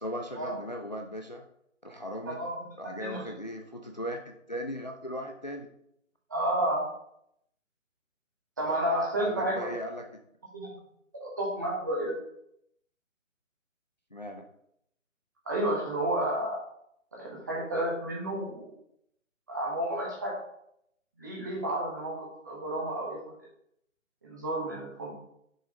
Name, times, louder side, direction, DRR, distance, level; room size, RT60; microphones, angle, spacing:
voice 1, 0.0-1.4 1.8-2.4 2.8-5.7 9.2-10.1 14.1-14.4, equal, 35° left, 3 dB, 0.5 m, -37 dB
voice 2, 2.3-2.6 3.0-3.2 6.3-6.8 8.6-9.7 10.5-10.7 11.1-12.1 15.5-16.6 17.1-18.7 19.5-20.3 21.2-23.2 24.2-25.1, right 1 dB, 15° right, -4 dB, 1.0 m, -31 dB
6.4 x 4.9 x 3.8 m, 0.74 s
figure-of-eight pair, 155°, 39 cm